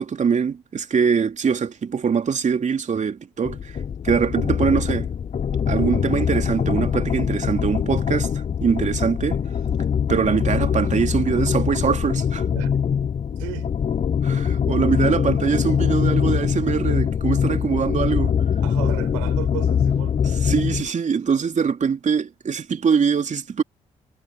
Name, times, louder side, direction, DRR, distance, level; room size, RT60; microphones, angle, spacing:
voice 1, 0.0-3.8 4.0-5.1 5.7-9.4 10.1-12.4 14.2-18.3 20.2-23.6, right 6 dB, 45° right, 3.0 m, -23 dB
sound 1, 3.4-20.9, left 7 dB, 45° left, 0.9 m, -23 dB
voice 2, 13.4-13.7 18.6-20.2, right 31 dB, 80° right, 7.2 m, -34 dB
hypercardioid pair, 45°, 17 cm